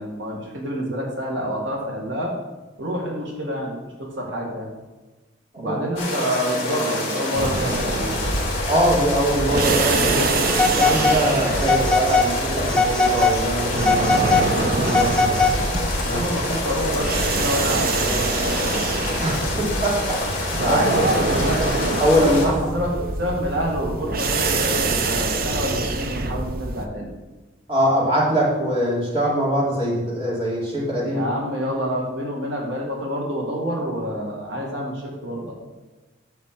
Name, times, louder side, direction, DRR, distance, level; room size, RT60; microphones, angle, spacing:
voice 1, 0.0-2.3 2.8-4.7 5.6-8.2 16.0-18.9 20.6-21.8 22.2-27.1 31.0-35.5, equal, 75° right, -2 dB, 1.8 m, -27 dB
sound 1, 6.0-22.5, left 2 dB, 30° left, 2.8 m, -27 dB
sound 2, 7.3-26.9, right 3 dB, 50° right, 0.7 m, -25 dB
voice 2, 8.7-10.2 10.6-15.1 16.0-16.2 19.2-20.2 20.4-20.8 22.0-22.6 27.7-31.2, equal, 30° right, -5 dB, 2.7 m, -23 dB
Telephone, 10.5-11.2 11.6-12.3 12.7-13.4 13.8-15.8, left 3 dB, 5° left, 0.7 m, -20 dB
11.5 x 4.2 x 7.4 m, 1.2 s
head